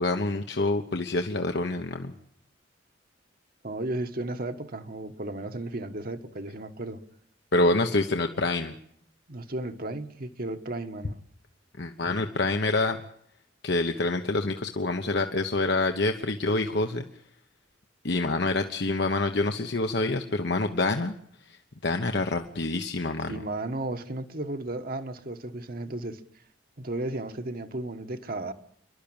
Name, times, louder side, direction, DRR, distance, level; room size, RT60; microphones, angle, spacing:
voice 1, 0.0-2.1 7.5-8.7 11.8-13.0 13.6-17.1 18.0-21.1 21.5-23.4, left 2 dB, 65° left, 1.1 m, -27 dB
voice 2, 3.6-7.0 9.3-11.2 23.3-26.2 26.8-28.5, right 2 dB, 50° right, 1.4 m, -34 dB
28.5 x 12.0 x 8.9 m
head